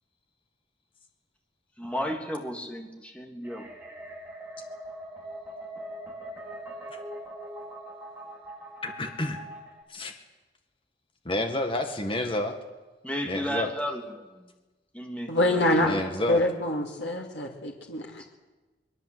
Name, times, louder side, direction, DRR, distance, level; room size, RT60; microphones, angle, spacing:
voice 1, 1.8-3.7 13.0-14.5 14.9-16.0 18.2-18.3, equal, 5° left, 2 dB, 3.1 m, -34 dB
sound 1, 3.4-9.8, right 1 dB, 10° right, 4.7 m, -42 dB
voice 2, 8.8-9.4 9.9-10.1 11.3-12.5 13.3-13.7 15.8-16.4, left 1 dB, 30° left, 5 dB, 1.9 m, -29 dB
voice 3, 15.3-15.9 16.3-18.3, left 1 dB, 90° left, 1 dB, 2.6 m, -25 dB
23.5 x 22.0 x 8.1 m, 1.2 s
head